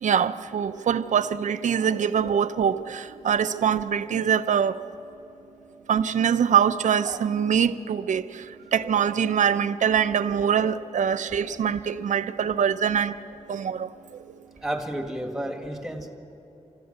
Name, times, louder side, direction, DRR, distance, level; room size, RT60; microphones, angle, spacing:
voice 1, 0.0-4.8 5.9-8.5 8.7-13.2 13.5-13.9, right 8 dB, 85° right, 0.6 m, -23 dB
voice 2, 14.6-16.1, right 1 dB, 5° right, 1.7 m, -31 dB
29.5 x 14.0 x 6.6 m
wide cardioid pair, 155°, 12 cm